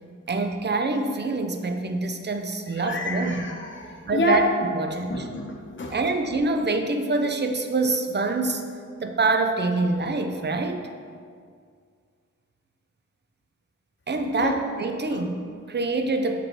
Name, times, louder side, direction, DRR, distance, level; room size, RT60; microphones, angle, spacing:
voice 1, 0.3-3.4 4.1-5.2 5.9-8.7 9.0-10.8 14.1-16.4, right 3 dB, 35° right, 6 dB, 0.5 m, -25 dB
voice 2, 2.7-4.5 5.1-5.9 14.4-14.5, left 1 dB, 40° left, 0 dB, 0.9 m, -28 dB
5.2 x 4.7 x 4.4 m, 2.1 s
wide cardioid pair, 105°, 31 cm